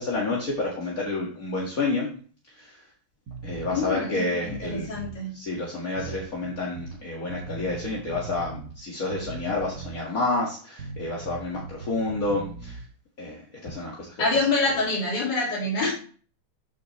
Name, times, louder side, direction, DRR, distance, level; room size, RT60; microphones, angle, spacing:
voice 1, 0.0-2.1 2.5-2.8 3.4-4.9 5.3-12.8 13.2-14.2, left 2 dB, 50° left, -4 dB, 2.2 m, -29 dB
sound 1, 3.3-3.9 4.4-5.2 6.0-7.0 7.3-8.8 9.1-10.1 10.8-12.9, right 4 dB, 85° right, 2.0 m, -39 dB
voice 2, 3.7-5.4 6.0-6.1 14.2-15.9, left 3 dB, 80° left, -3 dB, 3.2 m, -26 dB
13.5 x 6.4 x 3.2 m, 0.42 s
omnidirectional pair, 1.9 m